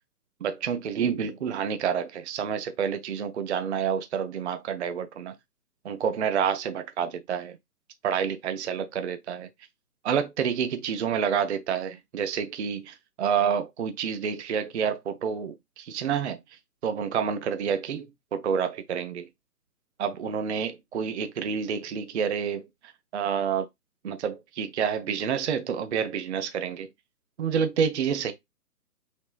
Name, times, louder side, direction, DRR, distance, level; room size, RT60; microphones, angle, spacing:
voice 1, 0.4-5.3 5.8-7.6 8.0-9.5 10.0-16.4 16.8-18.1 18.3-19.3 20.0-22.7 23.1-23.7 24.0-26.9 27.4-28.3, right 7 dB, 50° right, 0.5 m, -28 dB
3.6 x 3.5 x 2.3 m
hypercardioid pair, 140°, 47 cm